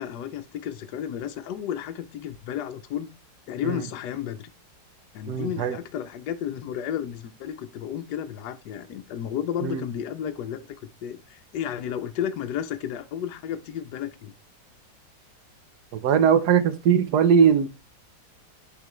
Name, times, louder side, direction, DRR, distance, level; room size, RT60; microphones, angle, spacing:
voice 1, 0.0-3.1 3.5-4.5 5.1-10.6 11.0-14.3, left 9 dB, 70° left, 1.2 m, -32 dB
voice 2, 5.3-5.8 9.6-9.8 16.0-17.7, right 7 dB, 70° right, 1.2 m, -20 dB
10.0 x 3.7 x 3.0 m
omnidirectional pair, 2.0 m